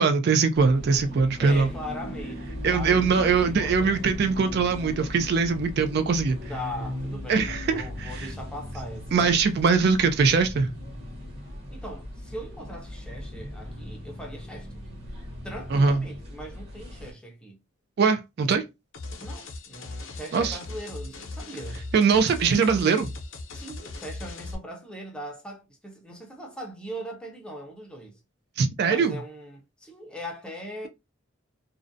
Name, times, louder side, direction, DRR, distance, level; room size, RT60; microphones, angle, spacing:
voice 1, 0.0-1.7 2.6-6.4 7.3-8.3 9.1-10.7 15.7-16.0 18.0-18.6 20.3-20.6 21.9-23.1 28.6-29.2, right 5 dB, 50° right, 0.3 m, -22 dB
sound 1, 0.5-17.1, left 1 dB, 30° right, 1.0 m, -38 dB
voice 2, 1.4-3.9 6.5-9.2 11.7-14.8 15.4-17.6 18.4-18.5 19.2-21.9 23.5-28.2 28.9-30.9, equal, 5° left, 0.5 m, -40 dB
sound 2, 18.9-24.5, left 2 dB, 70° left, 0.6 m, -38 dB
2.5 x 2.1 x 2.5 m
head